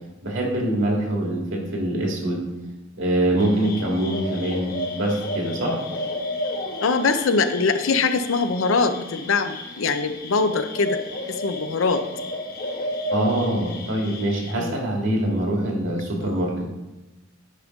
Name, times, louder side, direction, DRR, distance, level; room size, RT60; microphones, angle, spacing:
voice 1, 0.2-2.5 3.0-5.8 13.1-16.7, right 1 dB, 65° right, -1 dB, 2.0 m, -24 dB
sound 1, 3.4-14.5, left 1 dB, 50° left, 1.2 m, -32 dB
voice 2, 6.8-11.0 11.3-12.0 14.6-14.8 16.2-16.5, left 4 dB, 70° left, 9 dB, 0.6 m, -23 dB
9.9 x 3.6 x 5.1 m, 1.1 s
head